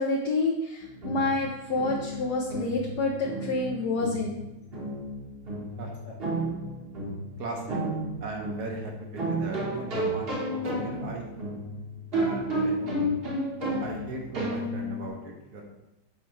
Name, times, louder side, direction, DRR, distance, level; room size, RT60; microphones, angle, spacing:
voice 1, 0.0-4.4, left 2 dB, 65° left, 0 dB, 1.1 m, -28 dB
sound 1, 0.8-15.1, right 1 dB, 35° right, 1.1 m, -32 dB
voice 2, 5.8-6.1 7.4-7.8 8.2-11.3 12.1-13.0 13.8-15.6, right 2 dB, 60° right, 1 dB, 1.3 m, -38 dB
7.3 x 4.5 x 3.1 m, 0.93 s
omnidirectional pair, 2.3 m